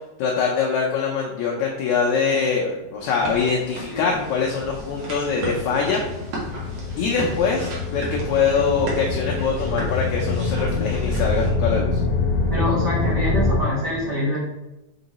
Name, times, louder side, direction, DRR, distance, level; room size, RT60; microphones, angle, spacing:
voice 1, 0.2-6.0 7.0-12.0, left 5 dB, 75° left, -1 dB, 1.7 m, -23 dB
sound 1, 3.1-11.5, right 2 dB, 50° right, 1.9 m, -35 dB
sound 2, 3.3-13.6, left 3 dB, 60° left, 1.7 m, -26 dB
voice 2, 12.5-14.4, left 1 dB, 65° right, -7 dB, 1.0 m, -25 dB
6.0 x 3.8 x 4.1 m, 0.97 s
omnidirectional pair, 3.9 m